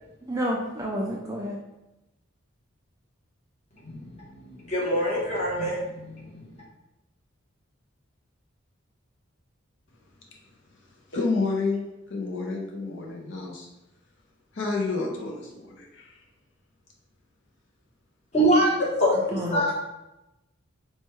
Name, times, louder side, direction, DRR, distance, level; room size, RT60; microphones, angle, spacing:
voice 1, 0.2-1.6 19.3-19.7, equal, 15° right, -2 dB, 0.4 m, -29 dB
voice 2, 3.8-6.5 18.3-19.7, equal, 30° left, -5 dB, 1.0 m, -25 dB
voice 3, 11.1-13.7 14.5-16.2, left 3 dB, 60° left, -1 dB, 0.6 m, -30 dB
4.2 x 2.2 x 3.1 m, 0.94 s
head